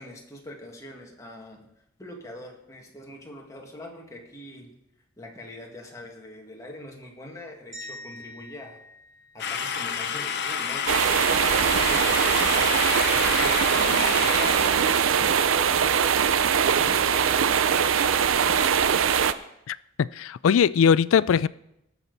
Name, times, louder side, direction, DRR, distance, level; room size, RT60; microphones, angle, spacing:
voice 1, 0.0-1.6 2.0-4.8 5.2-8.8 9.3-16.2 16.8-18.7, left 1 dB, 15° left, 2.0 m, -42 dB
sound 1, 7.7-10.0, left 1 dB, 35° right, 3.3 m, -44 dB
sound 2, 9.4-15.1, left 7 dB, 60° left, 0.7 m, -29 dB
sound 3, 10.9-19.3, right 7 dB, 80° right, 0.5 m, -22 dB
voice 2, 19.7-21.5, left 7 dB, 80° left, 0.3 m, -21 dB
19.0 x 7.0 x 4.0 m
head